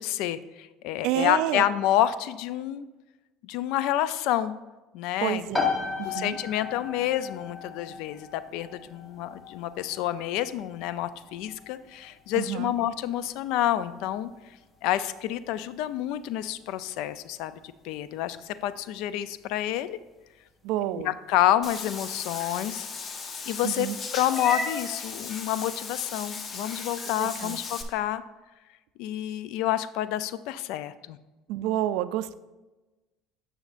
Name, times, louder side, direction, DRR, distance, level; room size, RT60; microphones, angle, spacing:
voice 1, 0.0-2.9 3.4-4.6 4.9-5.5 6.0-14.3 14.8-20.0 21.0-22.9 23.5-23.9 24.1-28.2 29.0-31.2, left 12 dB, 75° left, 14 dB, 0.4 m, -28 dB
voice 2, 1.0-1.6 5.2-5.7 6.0-6.4 12.3-12.7 20.6-21.1 23.6-24.0 27.2-27.6 31.5-32.3, right 13 dB, 75° right, 15 dB, 0.3 m, -29 dB
sound 1, 5.5-20.0, left 4 dB, 15° left, 1.1 m, -38 dB
Meow / Water / Bathtub (filling or washing), 21.6-27.8, left 4 dB, 35° left, 0.8 m, -36 dB
9.1 x 6.3 x 2.5 m, 1.1 s
supercardioid pair, 105°, 0 cm